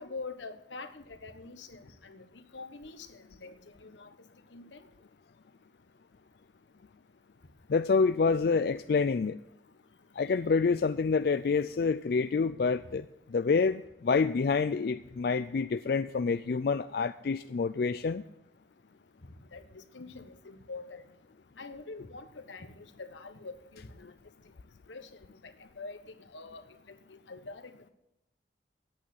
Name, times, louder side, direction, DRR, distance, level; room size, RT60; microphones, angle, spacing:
voice 1, 0.0-4.1 4.5-4.9 19.2-21.0 21.6-24.1 24.9-26.0 26.3-27.9, left 3 dB, 90° left, 1.4 m, -45 dB
voice 2, 7.7-9.4 10.2-13.1 13.3-18.2, left 4 dB, 55° left, 0.4 m, -27 dB
10.5 x 8.7 x 7.8 m
head